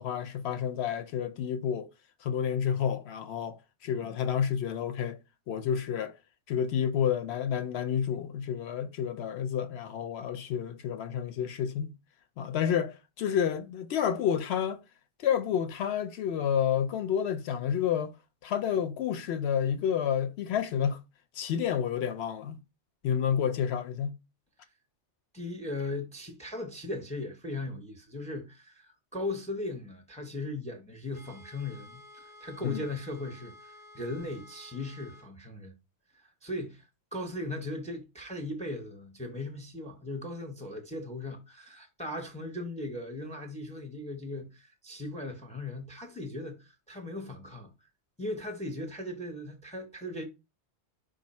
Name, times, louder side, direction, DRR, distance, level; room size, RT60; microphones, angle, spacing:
voice 1, 0.0-1.9 2.2-5.2 5.5-6.1 6.5-11.9 12.4-14.8 15.2-18.1 18.4-21.0 21.4-22.6 23.0-24.1 32.6-32.8, left 8 dB, 70° left, 0.8 m, -30 dB
voice 2, 25.3-35.7 36.1-36.9 37.1-47.7 48.2-50.2, left 2 dB, 10° left, 0.6 m, -38 dB
sound 1, 31.1-35.3, left 1 dB, 45° right, 0.6 m, -53 dB
5.1 x 2.6 x 4.1 m
omnidirectional pair, 1.2 m